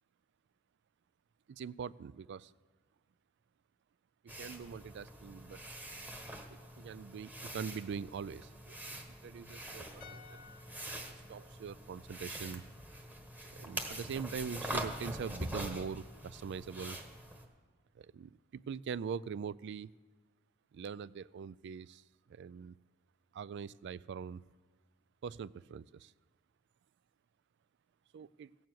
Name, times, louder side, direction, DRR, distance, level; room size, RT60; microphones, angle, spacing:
voice 1, 1.5-2.5 4.2-5.6 6.5-8.8 9.2-10.5 11.3-12.6 13.5-17.0 18.0-19.9 20.7-22.0 22.3-22.8 23.3-24.4 25.2-26.1 28.1-28.5, right 6 dB, 60° right, 20 dB, 0.3 m, -43 dB
sound 1, 4.3-17.5, right 1 dB, 10° right, 1.2 m, -44 dB
sound 2, 10.0-13.2 13.5-13.6, left 7 dB, 50° left, 0.9 m, -60 dB
17.0 x 7.1 x 7.7 m, 1.4 s
head